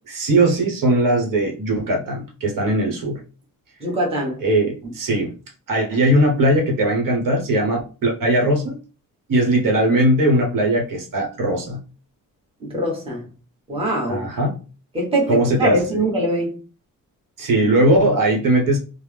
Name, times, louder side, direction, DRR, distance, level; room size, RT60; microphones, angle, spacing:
voice 1, 0.1-3.2 4.4-5.3 5.7-8.8 9.3-11.8 14.1-14.6 15.3-15.8 17.4-18.8, right 1 dB, 70° right, 1.0 m, -19 dB
voice 2, 3.8-4.4 12.6-13.2 13.7-14.3 14.9-16.6, right 1 dB, 15° right, 1.1 m, -22 dB
3.3 x 2.0 x 3.3 m
wide cardioid pair, 150°, 34 cm